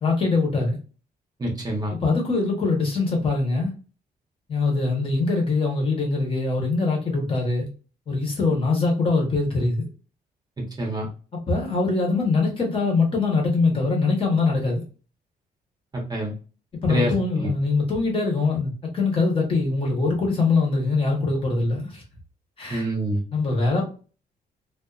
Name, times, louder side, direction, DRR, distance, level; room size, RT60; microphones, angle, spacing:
voice 1, 0.0-0.8 1.9-3.7 4.5-7.7 8.1-9.9 11.3-14.8 16.8-22.0 22.6-22.9 23.3-23.8, left 3 dB, 35° left, 1.0 m, -23 dB
voice 2, 1.4-1.9 10.8-11.1 15.9-16.3 16.9-17.5 22.7-23.2, right 1 dB, 25° right, 0.8 m, -26 dB
2.4 x 2.4 x 2.3 m
cardioid pair, 140°, 16 cm